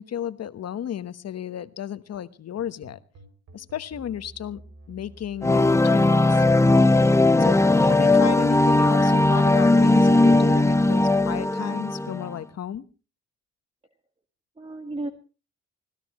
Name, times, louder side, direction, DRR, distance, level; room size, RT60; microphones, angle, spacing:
voice 1, 0.0-3.0 3.5-4.6 4.9-6.4 7.4-12.8, left 9 dB, 55° left, 13 dB, 1.2 m, -33 dB
sound 1, 2.6-11.4, right 2 dB, 75° right, 6.3 m, -47 dB
sound 2, 5.4-12.3, left 2 dB, 10° left, 0.7 m, -18 dB
voice 2, 14.6-15.1, right 2 dB, 20° right, 7 dB, 1.6 m, -35 dB
25.0 x 17.0 x 3.0 m, 0.35 s
cardioid pair, 90°, 30 cm